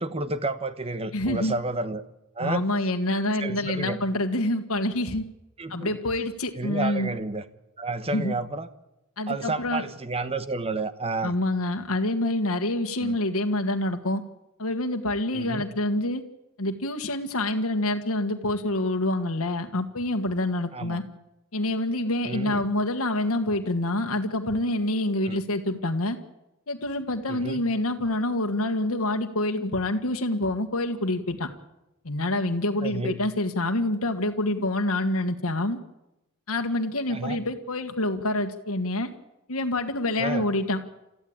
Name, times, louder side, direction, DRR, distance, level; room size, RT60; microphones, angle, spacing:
voice 1, 0.0-2.0 2.4-2.6 3.4-4.0 5.6-5.9 6.6-7.4 7.8-8.7 9.3-11.3 13.0-13.2 15.3-15.6 20.7-21.0 22.3-22.6 25.3-25.4 27.3-27.6 32.8-33.2 37.1-37.4 40.2-40.4, right 3 dB, 30° right, 12 dB, 1.2 m, -30 dB
voice 2, 1.1-1.5 2.4-5.2 5.7-7.1 8.1-8.3 9.2-9.8 11.2-14.2 14.6-16.2 16.6-21.0 21.5-26.2 26.7-31.5 32.0-35.8 36.5-39.1 39.5-40.9, left 1 dB, 85° left, 5 dB, 1.6 m, -27 dB
29.5 x 14.0 x 8.7 m, 0.93 s
head